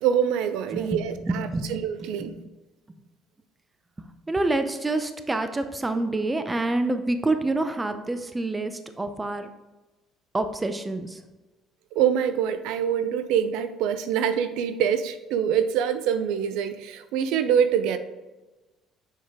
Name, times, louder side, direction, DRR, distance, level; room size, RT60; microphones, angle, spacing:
voice 1, 0.0-2.4 11.9-18.0, right 8 dB, 85° right, 10 dB, 0.5 m, -25 dB
voice 2, 1.2-1.7 4.3-9.5 10.3-11.2, right 2 dB, 15° right, 8 dB, 0.6 m, -27 dB
7.3 x 4.9 x 3.6 m, 1.1 s
cardioid pair, 120°, 0 cm